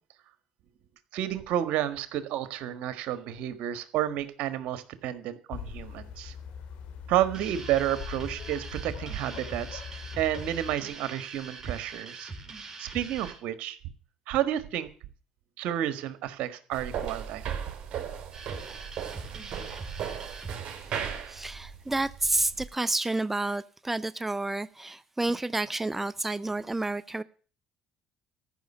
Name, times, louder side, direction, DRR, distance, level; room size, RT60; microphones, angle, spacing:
voice 1, 1.1-6.3 7.1-12.3 12.6-13.8 14.3-14.9 15.6-17.5, right 12 dB, 75° right, 1.5 m, -31 dB
sound 1, 5.5-10.8, left 7 dB, 75° left, 2.9 m, -41 dB
sound 2, 7.3-13.4 18.3-20.6, right 3 dB, 30° right, 4.4 m, -43 dB
sound 3, 16.7-22.7, right 8 dB, 55° right, 3.7 m, -37 dB
voice 2, 20.8-27.2, right 2 dB, 10° right, 0.6 m, -30 dB
14.0 x 6.2 x 9.9 m
supercardioid pair, 85°, 2 cm